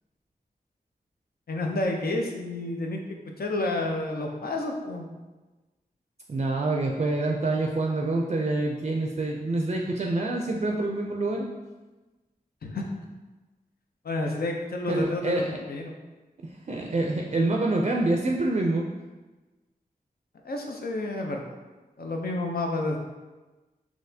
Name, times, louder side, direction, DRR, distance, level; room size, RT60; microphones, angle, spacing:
voice 1, 1.5-3.0 3.4-5.1 12.6-12.9 14.0-15.4 15.7-15.9 20.4-21.4 22.0-23.0, left 2 dB, 70° left, 2 dB, 0.5 m, -30 dB
voice 2, 6.3-11.5 14.9-15.6 16.4-18.9, right 2 dB, 45° right, 0 dB, 0.4 m, -26 dB
4.0 x 2.9 x 2.7 m, 1.2 s
wide cardioid pair, 60°, 16 cm